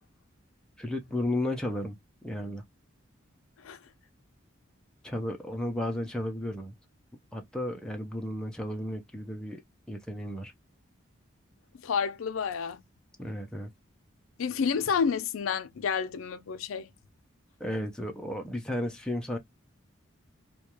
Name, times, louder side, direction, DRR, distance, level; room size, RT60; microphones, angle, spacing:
voice 1, 0.8-2.0 2.2-2.6 5.0-6.7 7.3-9.6 9.9-10.5 13.2-13.7 17.6-19.4, left 1 dB, 5° left, 0.4 m, -33 dB
voice 2, 11.8-12.8 14.4-16.9, left 6 dB, 90° left, 0.5 m, -30 dB
2.3 x 2.2 x 2.8 m
head